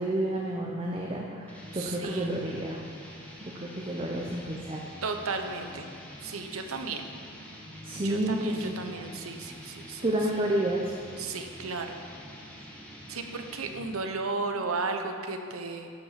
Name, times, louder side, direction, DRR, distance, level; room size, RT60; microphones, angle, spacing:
voice 1, 0.0-2.8 3.4-4.8 7.8-8.8 10.0-10.9 14.6-14.7, right 1 dB, 25° right, -1 dB, 0.7 m, -30 dB
sound 1, 1.5-14.0, equal, 5° left, 1.3 m, -46 dB
voice 2, 1.7-2.3 5.0-5.9 6.2-7.0 8.0-10.0 11.2-12.0 13.1-15.9, right 3 dB, 80° right, 5 dB, 0.9 m, -34 dB
12.0 x 5.8 x 5.8 m, 2.3 s
head